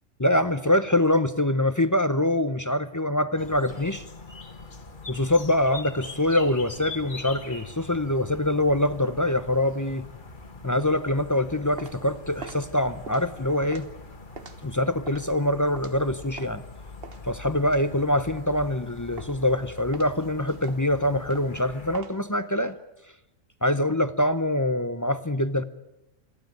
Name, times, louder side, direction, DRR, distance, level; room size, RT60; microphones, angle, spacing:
voice 1, 0.2-4.0 5.1-10.0 10.6-13.9 14.6-16.6 17.2-22.7 23.6-25.6, left 1 dB, 20° left, 12 dB, 0.5 m, -24 dB
sound 1, 3.4-22.0, left 3 dB, 40° left, 1.7 m, -43 dB
sound 2, 11.4-16.7 17.0-18.8 19.2-19.6 19.9-22.7, right 4 dB, 50° right, 1.5 m, -45 dB
28.0 x 12.0 x 9.3 m, 0.93 s
omnidirectional pair, 1.4 m